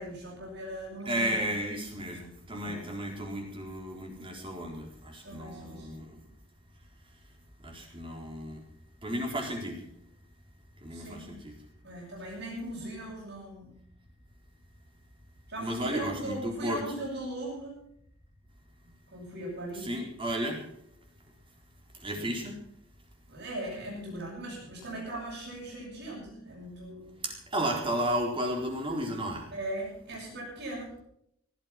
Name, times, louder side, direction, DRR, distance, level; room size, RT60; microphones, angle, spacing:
voice 1, 0.0-1.4 2.6-2.9 5.2-6.0 10.9-11.3 11.8-13.7 15.5-17.8 18.8-20.0 22.1-22.4 23.3-27.2 29.5-30.9, right 1 dB, 60° right, -7 dB, 8.0 m, -39 dB
voice 2, 1.1-6.2 7.6-8.6 9.0-9.8 10.8-11.5 15.6-16.8 19.8-20.6 22.0-22.5 27.2-29.4, right 1 dB, 25° right, 2 dB, 4.2 m, -33 dB
18.0 x 13.0 x 6.0 m, 0.73 s
head